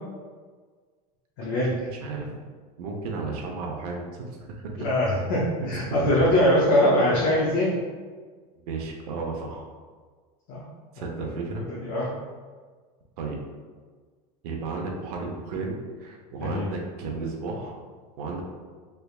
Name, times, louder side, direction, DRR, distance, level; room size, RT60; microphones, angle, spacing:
voice 1, 1.4-1.7 4.8-7.7 10.5-10.6 11.0-11.3 11.7-12.1 16.4-16.7, left 1 dB, 35° left, -5 dB, 0.5 m, -23 dB
voice 2, 1.9-2.4 2.8-4.7 5.7-6.3 8.7-9.7 10.9-11.6 12.0-12.1 13.2-13.4 14.4-17.8 18.2-18.4, right 4 dB, 65° right, 1 dB, 0.6 m, -33 dB
3.3 x 3.2 x 2.3 m, 1.5 s
supercardioid pair, 175°, 21 cm